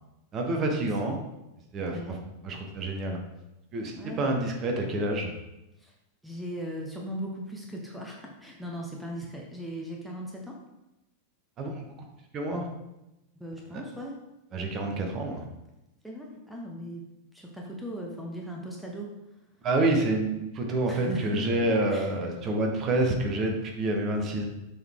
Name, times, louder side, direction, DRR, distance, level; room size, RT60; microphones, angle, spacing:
voice 1, 0.3-1.2 1.7-2.2 2.4-3.2 3.7-5.3 11.6-11.9 12.3-12.7 13.7-13.8 14.5-15.4 19.6-24.5, right 2 dB, 30° right, 2 dB, 1.1 m, -28 dB
voice 2, 1.8-2.2 4.0-4.4 5.8-5.9 6.2-10.6 13.3-14.1 16.0-17.0 17.3-19.1 20.9-22.1, equal, ahead, -1 dB, 1.0 m, -38 dB
7.5 x 4.0 x 3.6 m, 0.95 s
figure-of-eight pair, 90°, 0 cm